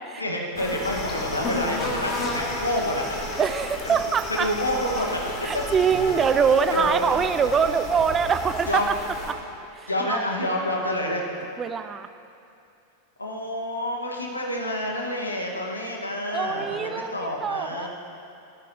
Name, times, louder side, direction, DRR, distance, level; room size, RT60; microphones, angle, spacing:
voice 1, 0.2-3.3 3.8-3.9 4.4-5.2 6.7-7.0 8.7-8.9 9.9-11.2 13.2-17.9, left 1 dB, 80° left, -1 dB, 1.8 m, -28 dB
sound 1, 0.5-9.3, left 2 dB, 25° left, 2.1 m, -32 dB
voice 2, 3.4-4.5 5.4-9.4 9.8-10.2 11.6-12.1 16.3-17.9, right 6 dB, 20° right, 11 dB, 0.5 m, -24 dB
18.5 x 13.0 x 3.1 m, 2.7 s
figure-of-eight pair, 90°, 0 cm